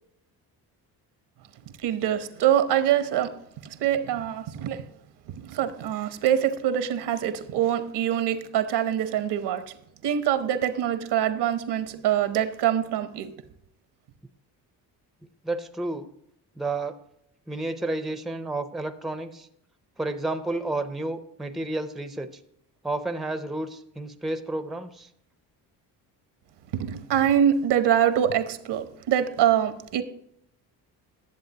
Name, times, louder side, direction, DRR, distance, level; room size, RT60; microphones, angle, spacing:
voice 1, 1.8-3.3 3.6-4.8 5.3-9.7 10.0-13.3 26.7-30.0, right 10 dB, 75° right, 0.9 m, -24 dB
voice 2, 15.4-16.1 16.6-17.0 17.5-19.5 20.0-22.3 22.8-25.1, right 2 dB, ahead, 0.5 m, -31 dB
10.5 x 7.4 x 2.8 m
supercardioid pair, 75°, 41 cm